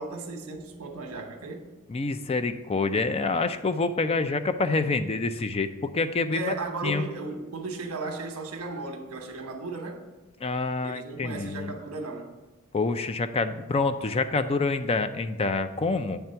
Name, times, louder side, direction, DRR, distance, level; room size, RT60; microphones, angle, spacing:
voice 1, 0.0-1.6 6.3-10.0 10.8-12.3, right 3 dB, 70° right, 1.1 m, -35 dB
voice 2, 1.9-6.5 6.8-7.0 10.4-11.7 12.7-16.2, left 3 dB, 25° left, 0.4 m, -27 dB
8.8 x 3.4 x 5.6 m
head